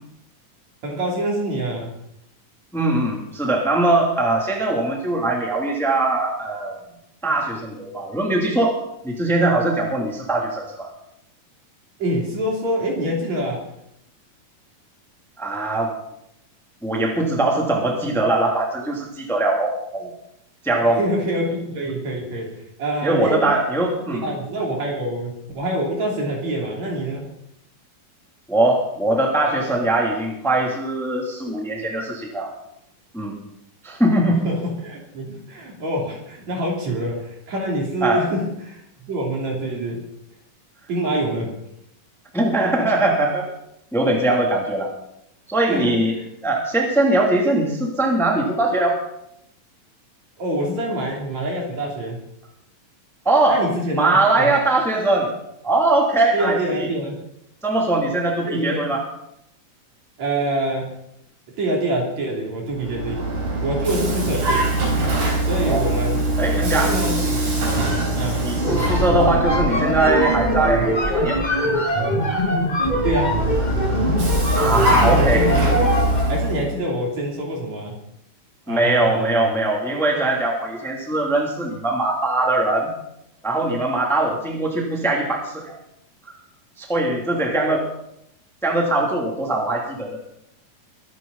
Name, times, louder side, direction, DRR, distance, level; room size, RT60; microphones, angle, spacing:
voice 1, 0.8-2.0 12.0-13.7 20.8-23.5 24.1-27.2 34.4-40.1 40.9-41.6 45.7-46.0 50.4-52.2 53.5-54.5 56.3-57.2 58.4-58.9 60.2-61.0 61.6-63.3 63.6-64.7 65.5-66.3 66.6-67.5 68.1-68.4 73.0-73.5 74.9-75.9 76.3-78.0 78.7-79.5 87.7-87.8, right 1 dB, 55° right, -2 dB, 4.6 m, -26 dB
voice 2, 2.7-6.8 7.2-8.8 9.0-10.9 15.4-15.9 16.8-20.1 20.6-21.0 23.0-24.3 28.5-32.5 33.1-33.3 33.8-34.4 38.0-38.2 42.3-43.5 43.9-44.9 45.5-46.1 46.4-49.0 53.2-53.6 53.9-55.3 55.6-56.9 57.6-59.0 65.6-65.8 66.4-66.9 68.4-71.4 74.5-75.4 78.7-82.9 83.4-85.8 86.8-87.8 88.6-90.2, right 2 dB, ahead, -1 dB, 2.6 m, -21 dB
Vehicle, 62.7-71.2 72.9-76.8, right 1 dB, 80° right, 6.4 m, -23 dB
sound 1, 68.6-76.4, equal, 20° left, 1.2 m, -22 dB
24.0 x 11.0 x 4.2 m, 0.79 s
omnidirectional pair, 3.8 m